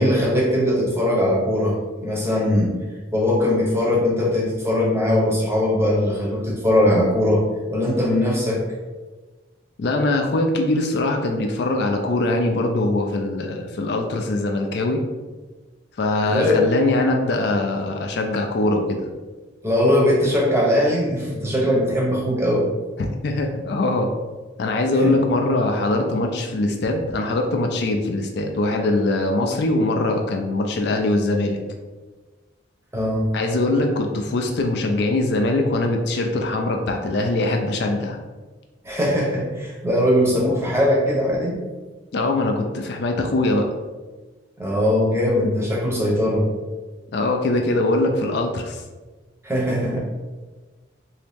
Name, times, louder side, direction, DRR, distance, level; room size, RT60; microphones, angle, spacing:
voice 1, 0.0-1.8 2.0-2.7 3.1-7.4 7.7-8.6 16.3-16.6 19.6-22.7 25.0-25.1 32.9-33.2 38.8-41.6 44.6-46.5 49.4-50.0, left 1 dB, 15° right, -4 dB, 0.7 m, -20 dB
voice 2, 9.8-15.0 16.0-19.0 23.2-24.1 24.6-31.6 33.3-38.2 42.1-43.7 47.1-48.8, left 2 dB, 60° left, 2 dB, 0.4 m, -22 dB
2.9 x 2.7 x 3.4 m, 1.3 s
head